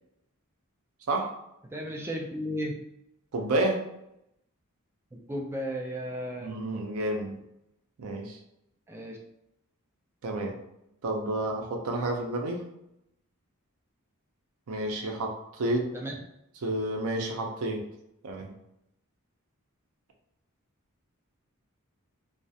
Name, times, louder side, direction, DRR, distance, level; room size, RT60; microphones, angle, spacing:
voice 1, 1.6-2.8 5.1-6.5 8.9-9.2 15.9-16.1, equal, 10° right, -1 dB, 0.3 m, -34 dB
voice 2, 3.3-3.9 6.4-7.4 8.0-8.4 10.2-10.6 11.0-12.7 14.7-15.9 16.6-17.9 18.2-18.5, right 1 dB, 75° right, 1 dB, 0.5 m, -30 dB
2.3 x 2.0 x 2.6 m, 0.83 s
head